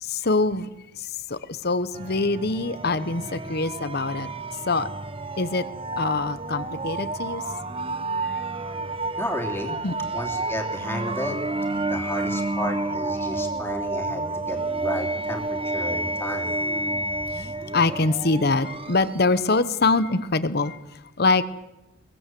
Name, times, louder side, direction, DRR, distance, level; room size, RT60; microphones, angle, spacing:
voice 1, 0.0-0.7 0.9-4.3 4.7-4.9 5.4-5.7 5.9-7.4 8.2-8.4 9.8-9.9 11.8-12.0 17.3-21.4, left 3 dB, 55° left, 13 dB, 1.1 m, -24 dB
sound 1, 1.9-19.4, right 2 dB, 30° right, 0.9 m, -30 dB
voice 2, 9.2-9.8 10.1-11.4 11.8-16.5, left 1 dB, 10° left, 2 dB, 3.0 m, -32 dB
22.5 x 20.0 x 7.8 m, 0.94 s
head